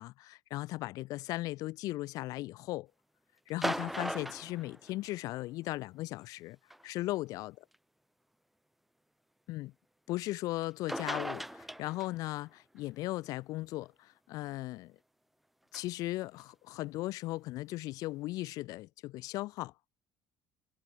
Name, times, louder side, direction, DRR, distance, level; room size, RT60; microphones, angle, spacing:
voice 1, 0.0-2.9 3.5-6.6 6.8-7.6 9.5-9.7 10.1-14.9 15.7-19.7, left 18 dB, 70° left, 0.8 m, -37 dB
sound 1, 3.5-5.4 6.7-6.8 7.7-7.8 10.6-10.7 10.9-12.3 15.7-15.8, right 1 dB, ahead, 0.7 m, -37 dB
supercardioid pair, 105°, 7 cm